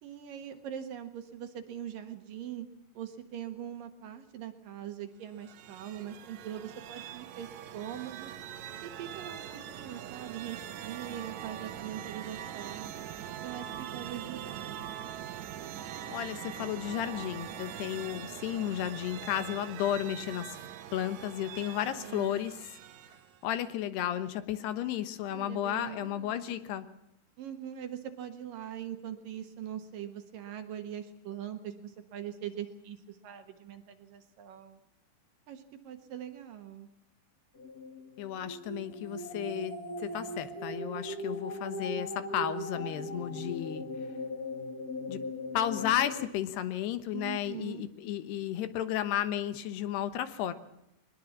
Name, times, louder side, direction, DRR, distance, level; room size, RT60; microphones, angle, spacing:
voice 1, 0.0-2.7 2.9-8.3 8.8-12.9 13.4-14.8 21.8-22.5 25.3-26.6 27.4-34.8 35.5-36.9 47.1-47.9, right 10 dB, 60° right, 7 dB, 2.8 m, -42 dB
sound 1, 5.3-23.5, right 10 dB, 80° right, 1.6 m, -43 dB
voice 2, 16.1-20.6 20.9-22.6 23.4-26.9 38.2-43.9 45.1-45.2 45.5-50.5, left 11 dB, 75° left, 12 dB, 3.2 m, -33 dB
waking up, 37.5-46.3, left 1 dB, 40° left, 1.3 m, -39 dB
21.5 x 21.0 x 7.2 m, 0.80 s
omnidirectional pair, 4.9 m